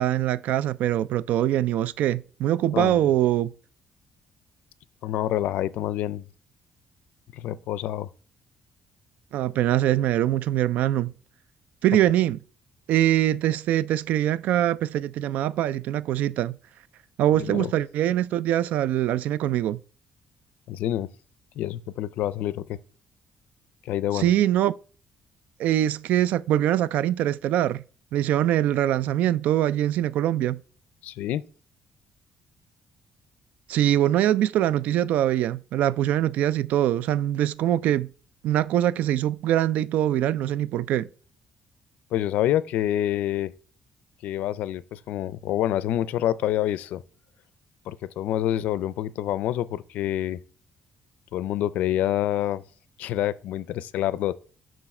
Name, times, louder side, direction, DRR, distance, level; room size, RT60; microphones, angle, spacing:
voice 1, 0.0-3.5 9.3-11.1 11.8-12.4 12.9-16.6 17.2-19.8 24.1-24.7 25.6-27.8 28.1-30.6 33.7-38.1 38.4-41.1, right 12 dB, 85° right, 0.3 m, -23 dB
voice 2, 2.7-3.1 5.0-6.2 7.3-8.1 17.4-17.7 20.7-21.1 21.6-22.8 23.9-24.3 31.0-31.4 42.1-43.5 44.2-47.0 47.9-50.4 51.3-52.6 53.0-54.3, left 12 dB, 85° left, 0.4 m, -27 dB
6.9 x 6.1 x 4.3 m
cardioid pair, 135°, 3 cm